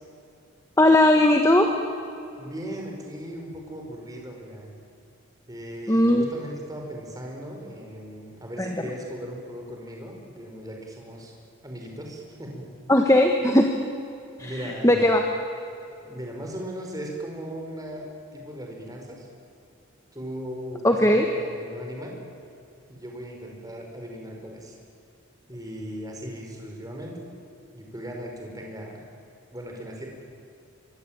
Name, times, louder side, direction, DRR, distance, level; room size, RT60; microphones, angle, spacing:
voice 1, 0.8-1.7 5.9-6.3 8.6-8.7 12.9-13.8 14.4-15.2 20.8-21.3, left 1 dB, 15° left, 4 dB, 1.4 m, -18 dB
voice 2, 2.4-4.8 5.5-11.3 11.6-12.7 14.4-15.1 16.0-19.3 20.1-22.2 22.9-24.8 25.5-27.2 27.7-29.0 29.5-30.1, equal, 15° right, 1 dB, 5.1 m, -38 dB
25.0 x 24.5 x 8.9 m, 2.6 s
head